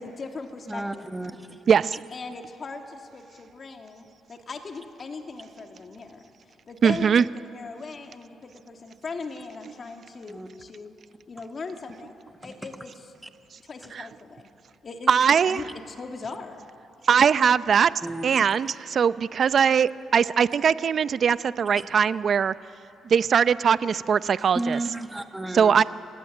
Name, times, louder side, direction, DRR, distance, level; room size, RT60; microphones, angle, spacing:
voice 1, 0.0-1.0 2.1-10.9 11.3-12.1 12.4-12.9 13.6-14.5 14.8-16.6, left 4 dB, 40° left, 4 dB, 2.4 m, -39 dB
voice 2, 0.7-1.6 10.3-10.5 12.4-12.5 13.2-13.3 18.0-18.4 21.8-21.9 24.5-25.8, right 2 dB, 10° right, 7 dB, 1.5 m, -33 dB
voice 3, 1.7-2.0 6.8-7.2 13.9-14.0 15.1-15.6 17.1-17.9 18.2-22.5 23.0-24.8 25.5-25.8, right 7 dB, 50° right, 16 dB, 0.6 m, -21 dB
26.5 x 16.5 x 10.0 m, 3.0 s
cardioid pair, 90°, 0 cm